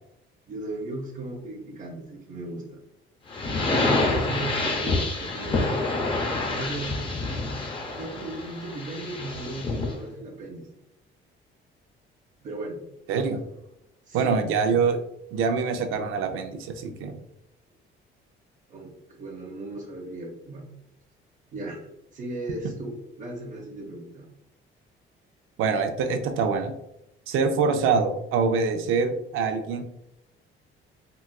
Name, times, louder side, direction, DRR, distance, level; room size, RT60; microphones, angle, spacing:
voice 1, 0.5-2.8 3.7-5.9 6.5-7.0 8.0-10.7 12.4-12.9 14.1-14.4 18.7-20.7 21.5-24.3, right 2 dB, 40° right, 0 dB, 0.6 m, -36 dB
sound 1, 3.3-10.0, left 2 dB, 25° left, 0.5 m, -27 dB
voice 2, 13.1-13.4 14.1-15.0 15.3-17.2 25.6-26.7 27.3-29.8, right 5 dB, 90° right, 7 dB, 0.5 m, -24 dB
3.9 x 2.3 x 2.2 m, 0.81 s
cardioid pair, 150°, 21 cm